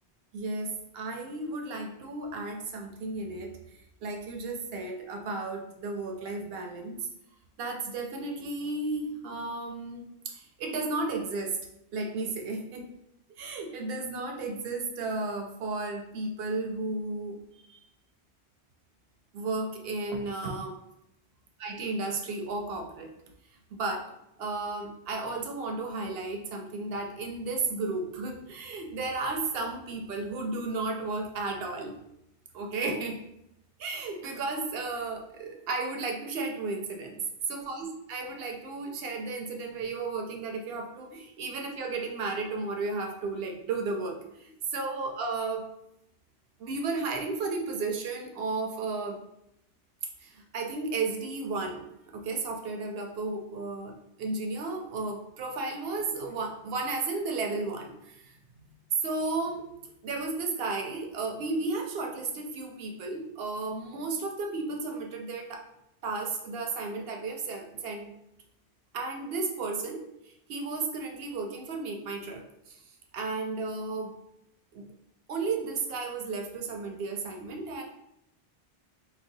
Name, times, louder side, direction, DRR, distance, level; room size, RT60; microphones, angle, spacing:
voice 1, 0.3-3.6 4.0-7.1 7.6-11.6 11.9-12.9 13.4-17.4 17.7-17.8 19.3-20.8 21.6-23.1 23.7-24.1 24.4-32.0 32.5-33.2 33.8-37.2 37.5-45.7 46.6-49.2 50.2-51.9 52.1-58.7 59.0-59.7 60.0-65.6 66.0-68.1 68.9-70.1 70.5-72.8 73.1-74.2 74.7-74.9 75.3-77.8, right 3 dB, 65° right, 3 dB, 0.8 m, -33 dB
3.9 x 2.3 x 2.7 m, 0.80 s
omnidirectional pair, 1.1 m